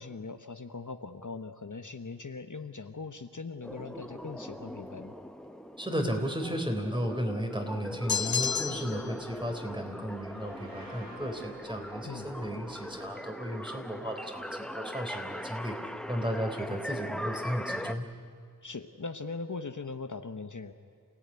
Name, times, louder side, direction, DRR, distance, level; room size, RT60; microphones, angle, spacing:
voice 1, 0.0-5.1 12.0-12.3 18.6-20.7, left 4 dB, 60° left, 8 dB, 1.1 m, -40 dB
sound 1, 3.6-17.9, equal, ahead, 1.0 m, -40 dB
voice 2, 5.8-18.1, equal, 15° right, 3 dB, 3.8 m, -34 dB
sound 2, 8.1-9.1, left 7 dB, 85° left, 0.7 m, -30 dB
sound 3, 9.9-17.4, right 1 dB, 75° right, 3.9 m, -55 dB
28.5 x 17.5 x 9.8 m, 2.3 s
wide cardioid pair, 50°, 35 cm